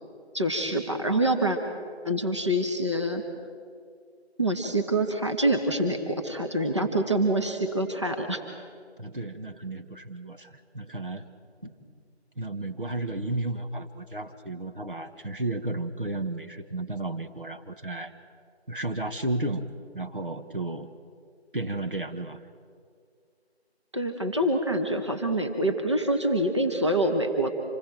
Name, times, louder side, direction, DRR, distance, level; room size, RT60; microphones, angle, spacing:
voice 1, 0.3-1.6 2.0-3.2 4.4-8.4 11.6-11.7 23.9-27.5, right 1 dB, 25° right, 4 dB, 1.3 m, -26 dB
voice 2, 9.0-11.2 12.4-18.1 18.7-20.9 21.5-22.4, right 2 dB, 50° right, 6 dB, 1.3 m, -33 dB
27.0 x 20.0 x 7.6 m, 2.2 s
figure-of-eight pair, 170°, 33 cm